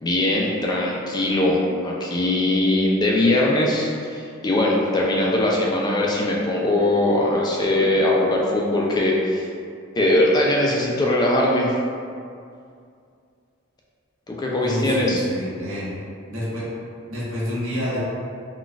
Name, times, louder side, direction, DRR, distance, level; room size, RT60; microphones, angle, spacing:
voice 1, 0.0-9.5 10.0-11.7 14.3-15.2, left 1 dB, 20° left, -3 dB, 0.3 m, -21 dB
voice 2, 14.6-15.9 16.3-16.7 17.1-18.0, equal, 90° right, -8 dB, 1.0 m, -28 dB
3.9 x 2.3 x 2.3 m, 2.3 s
head